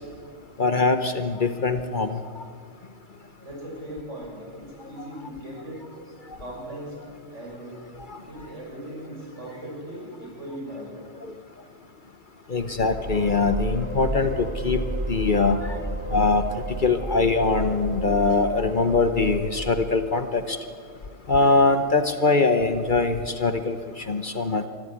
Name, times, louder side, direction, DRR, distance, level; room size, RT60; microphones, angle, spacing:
voice 1, 0.6-2.2 8.1-8.2 12.5-14.8 15.1-15.6 16.1-16.4 16.8-20.6 21.3-24.7, left 3 dB, 40° left, 9 dB, 1.0 m, -22 dB
voice 2, 3.4-5.8 6.4-7.8 8.3-11.0, right 1 dB, 65° right, -2 dB, 6.7 m, -38 dB
sound 1, 12.5-20.4, right 1 dB, 20° right, 4.5 m, -32 dB
24.5 x 13.0 x 9.8 m, 2.1 s
omnidirectional pair, 1.4 m